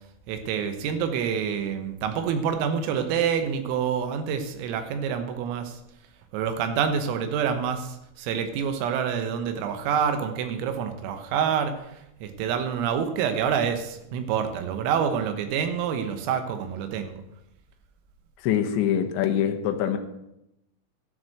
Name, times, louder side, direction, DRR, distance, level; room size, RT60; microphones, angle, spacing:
voice 1, 0.3-5.8 6.3-17.2, right 7 dB, 90° right, 7 dB, 3.8 m, -27 dB
voice 2, 18.4-20.0, left 9 dB, 75° left, 6 dB, 3.0 m, -24 dB
12.0 x 6.4 x 7.7 m, 0.86 s
omnidirectional pair, 6.0 m